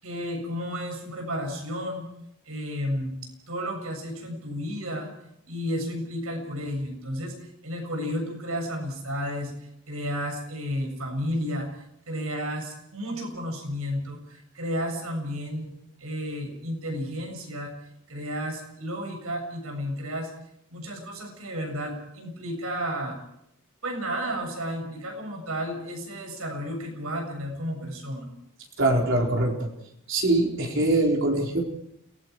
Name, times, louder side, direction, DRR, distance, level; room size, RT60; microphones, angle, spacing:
voice 1, 0.0-2.1 2.5-3.2 3.5-5.1 5.5-7.3 7.6-9.5 9.9-11.7 12.1-15.7 16.0-17.7 18.1-20.3 20.7-23.2 23.8-28.3, equal, 80° right, 2 dB, 7.2 m, -32 dB
voice 2, 28.8-29.7 30.1-31.6, right 2 dB, 60° right, 0 dB, 4.3 m, -23 dB
29.5 x 19.0 x 4.7 m, 0.77 s
head